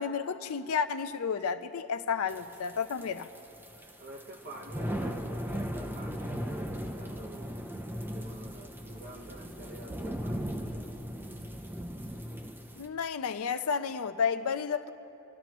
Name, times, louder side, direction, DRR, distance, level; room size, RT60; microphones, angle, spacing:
voice 1, 0.0-3.3 12.8-14.9, left 6 dB, 75° left, 0.5 m, -31 dB
sound 1, 2.3-12.9, equal, 10° right, 0.6 m, -38 dB
voice 2, 4.0-7.7 8.1-11.0, right 1 dB, 45° right, 1.2 m, -48 dB
sound 2, 4.9-12.3, equal, 35° left, 2.2 m, -50 dB
25.5 x 13.0 x 3.0 m
head